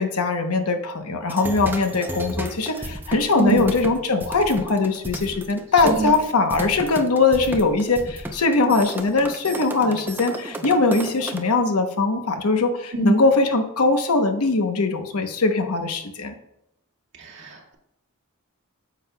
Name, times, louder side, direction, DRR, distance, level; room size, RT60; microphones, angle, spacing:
voice 1, 0.0-16.3, left 3 dB, 80° left, 7 dB, 0.9 m, -21 dB
sound 1, 1.3-11.4, right 1 dB, 10° right, 0.6 m, -33 dB
voice 2, 17.2-17.7, right 2 dB, 55° right, -3 dB, 2.0 m, -23 dB
9.0 x 7.0 x 2.3 m, 0.84 s
head